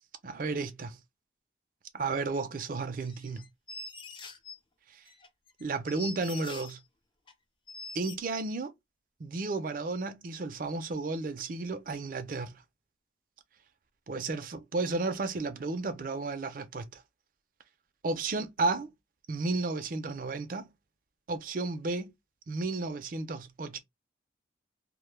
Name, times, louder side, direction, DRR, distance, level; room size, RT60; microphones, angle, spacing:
voice 1, 0.2-1.0 1.9-3.4 5.6-6.8 7.9-8.7 9.2-12.5 14.1-17.0 18.0-18.9 19.3-20.7 21.3-22.1 22.5-23.8, right 3 dB, 45° right, 0.4 m, -33 dB
sound 1, 3.0-4.6 5.1-6.8 7.3-7.4 7.7-8.2, left 3 dB, 25° left, 0.4 m, -44 dB
2.1 x 2.1 x 3.0 m
head